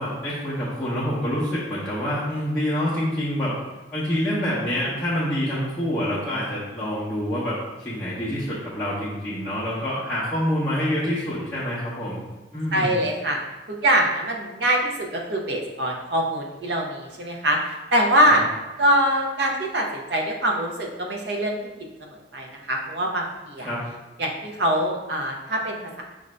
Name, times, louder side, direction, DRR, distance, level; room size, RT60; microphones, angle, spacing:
voice 1, 0.0-3.5 3.9-12.2 12.5-12.9 18.3-18.4 23.6-23.8, equal, 5° left, -12 dB, 0.7 m, -26 dB
voice 2, 12.7-13.4 13.7-18.4 18.8-21.6 22.0-23.7 24.2-26.0, right 1 dB, 60° right, 1 dB, 0.6 m, -23 dB
4.9 x 2.6 x 3.2 m, 1.1 s
head